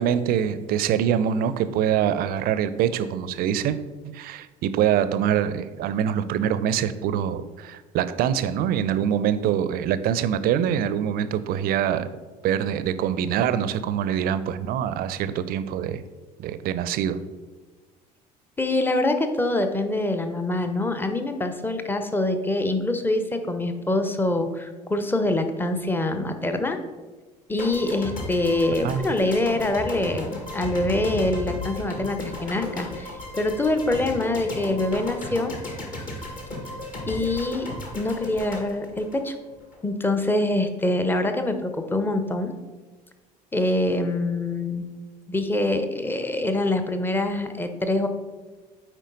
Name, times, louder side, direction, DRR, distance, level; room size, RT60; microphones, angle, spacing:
voice 1, 0.0-3.8 4.0-12.1 12.4-16.0 16.4-17.2 28.8-29.1, right 9 dB, 45° right, 13 dB, 0.5 m, -24 dB
voice 2, 18.6-26.8 27.5-35.5 37.1-37.7 37.9-39.3 39.8-42.5 43.5-44.8 45.3-48.1, left 2 dB, 10° left, 7 dB, 0.7 m, -25 dB
sound 1, 27.6-39.8, left 2 dB, 40° left, 1.9 m, -35 dB
9.1 x 4.4 x 3.9 m, 1.3 s
figure-of-eight pair, 60°, 21 cm